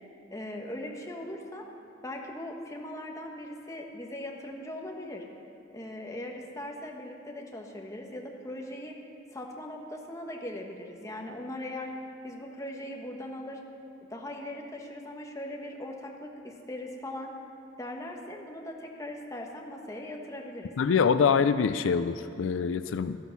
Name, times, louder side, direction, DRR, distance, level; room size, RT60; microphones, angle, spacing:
voice 1, 0.3-1.7 2.0-5.2 5.7-9.0 9.3-11.9 12.2-13.6 14.1-17.3 17.8-20.7, left 1 dB, 15° left, 0 dB, 1.3 m, -39 dB
voice 2, 20.8-23.2, left 6 dB, 85° left, 12 dB, 0.4 m, -25 dB
13.0 x 11.0 x 6.0 m, 2.7 s
head